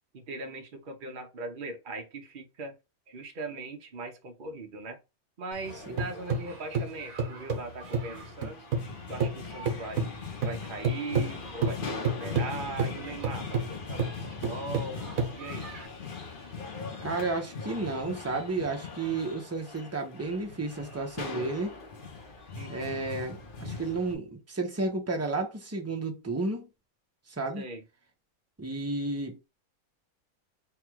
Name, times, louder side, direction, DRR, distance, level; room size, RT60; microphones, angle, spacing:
voice 1, 0.1-2.8 3.1-5.0 5.4-8.6 9.1-14.1 14.5-15.0 15.4-15.7 22.5-23.0 27.5-27.8, right 2 dB, 45° right, 0.8 m, -40 dB
sound 1, 5.5-8.9 9.2-15.9, right 4 dB, 70° right, 1.4 m, -31 dB
sound 2, 5.6-24.1, left 4 dB, 45° left, 0.9 m, -41 dB
voice 2, 17.0-21.8 22.7-26.7 27.4-27.6 28.6-29.5, right 3 dB, 15° right, 0.6 m, -32 dB
3.5 x 2.4 x 4.5 m
omnidirectional pair, 1.5 m